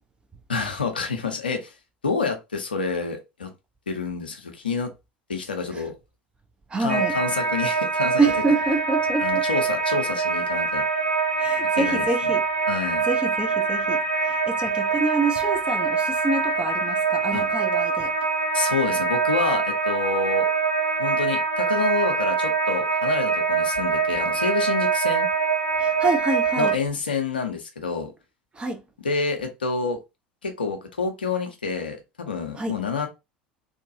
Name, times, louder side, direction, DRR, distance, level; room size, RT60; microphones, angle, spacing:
voice 1, 0.5-1.7 2.0-3.5 3.9-4.9 5.3-6.0 6.8-8.2 9.2-10.9 11.8-12.3 12.7-13.0 17.3-17.5 18.5-20.5 21.0-25.3 26.6-28.1 29.0-30.0 30.4-33.1, left 4 dB, 80° left, 0.6 m, -28 dB
voice 2, 6.7-7.1 8.2-9.4 11.4-12.4 13.1-14.0 14.3-18.1 25.8-26.8 28.6-28.8 32.6-32.8, right 3 dB, 20° right, 0.6 m, -26 dB
sound 1, 6.9-26.8, right 5 dB, 90° right, 0.4 m, -24 dB
2.7 x 2.2 x 2.6 m
figure-of-eight pair, 70°, 5 cm